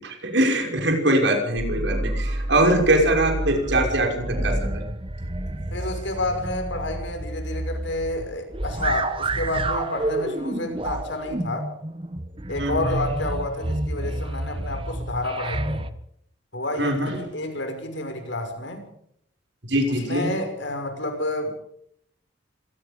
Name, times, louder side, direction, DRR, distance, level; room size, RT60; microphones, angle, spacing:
voice 1, 0.0-4.8 12.6-12.8 16.8-17.2 19.6-20.3, right 1 dB, 70° right, 3 dB, 5.9 m, -22 dB
sound 1, 1.6-15.9, right 1 dB, 25° right, 1.3 m, -29 dB
voice 2, 5.7-11.7 12.5-15.9 16.5-18.8 19.9-21.6, left 2 dB, 70° left, 6 dB, 5.9 m, -29 dB
26.0 x 19.5 x 5.3 m, 0.70 s
head